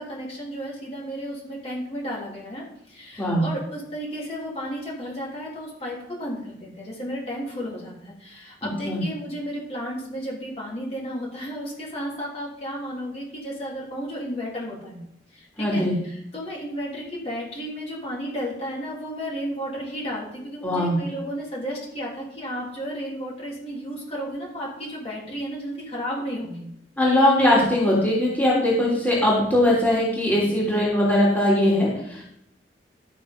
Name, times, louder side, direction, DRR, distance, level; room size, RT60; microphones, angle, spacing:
voice 1, 0.0-15.0 15.3-26.7 27.1-27.3, equal, 35° left, -5 dB, 3.4 m, -33 dB
voice 2, 8.6-9.0 15.6-15.9 20.6-20.9 27.0-32.2, left 1 dB, 10° left, -6 dB, 3.2 m, -20 dB
12.5 x 6.7 x 5.3 m, 0.77 s
head